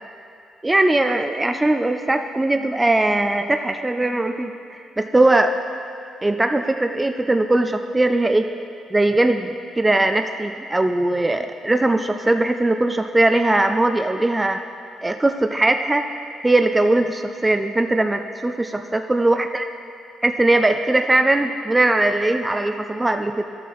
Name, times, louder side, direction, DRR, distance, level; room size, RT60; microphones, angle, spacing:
voice 1, 0.6-5.5 6.2-8.5 8.9-14.6 15.0-16.0 16.4-19.7 20.2-23.4, right 2 dB, 15° right, 7 dB, 0.4 m, -20 dB
11.5 x 7.0 x 4.7 m, 2.4 s
cardioid pair, 90°, 0 cm